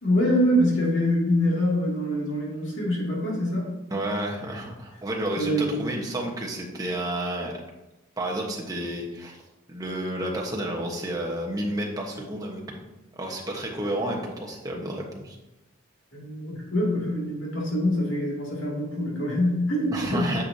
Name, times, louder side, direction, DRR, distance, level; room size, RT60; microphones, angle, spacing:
voice 1, 0.0-3.7 5.3-5.7 16.1-20.4, equal, 60° left, -4 dB, 2.5 m, -25 dB
voice 2, 3.9-7.6 8.2-9.4 9.7-12.6 13.2-15.4 19.9-20.4, right 1 dB, 15° right, -1 dB, 1.1 m, -31 dB
9.5 x 6.4 x 2.8 m, 1.0 s
head